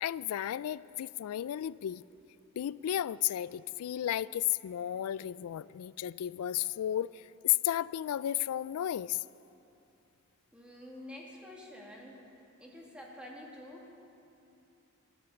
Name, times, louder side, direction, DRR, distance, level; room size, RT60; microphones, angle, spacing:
voice 1, 0.0-2.0 2.6-7.1 7.4-9.2, left 12 dB, 70° left, 17 dB, 0.3 m, -33 dB
voice 2, 10.5-12.2 12.6-13.9, left 1 dB, 5° right, -3 dB, 2.2 m, -48 dB
13.5 x 13.0 x 7.1 m, 2.8 s
head